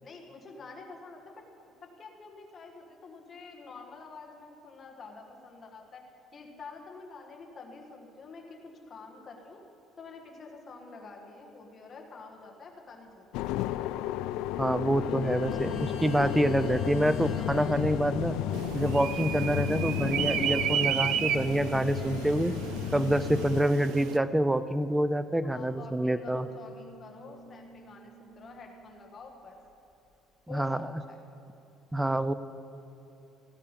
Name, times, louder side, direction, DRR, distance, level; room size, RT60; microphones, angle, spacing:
voice 1, 0.0-1.3 1.8-9.6 10.0-13.4 25.5-29.6 30.5-31.2, left 4 dB, 25° left, 1 dB, 1.5 m, -48 dB
sound 1, 13.3-23.6, left 12 dB, 80° left, 0.3 m, -33 dB
voice 2, 14.6-18.4 18.7-22.6 22.9-26.5 30.5-30.9 31.9-32.3, right 1 dB, 5° right, 13 dB, 0.3 m, -27 dB
sound 2, 14.8-19.1 20.4-24.7 25.7-29.2 29.7-29.8, left 1 dB, 45° left, 1.2 m, -47 dB
sound 3, 18.5-24.2, right 9 dB, 70° right, 0.5 m, -33 dB
18.0 x 8.7 x 5.2 m, 2.9 s
cardioid pair, 180°, 0 cm